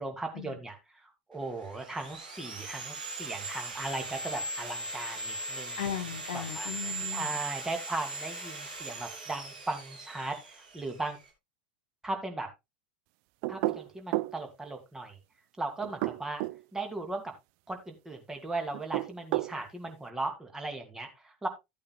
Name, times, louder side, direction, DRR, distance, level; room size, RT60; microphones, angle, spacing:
voice 1, 0.0-5.8 6.3-6.7 7.1-11.2 12.0-12.5 13.5-15.2 15.6-16.4 16.7-17.2 17.7-21.5, right 2 dB, 10° right, 5 dB, 2.6 m, -37 dB
Sawing, 1.4-11.3, right 2 dB, 75° right, 2.7 m, -39 dB
voice 2, 5.8-7.4, left 9 dB, 65° left, 5 dB, 1.0 m, -37 dB
sound 1, 13.4-14.4 15.8-16.6 18.7-19.6, right 19 dB, 50° right, 0.4 m, -31 dB
14.5 x 8.5 x 2.3 m, 0.21 s
figure-of-eight pair, 80°, 5 cm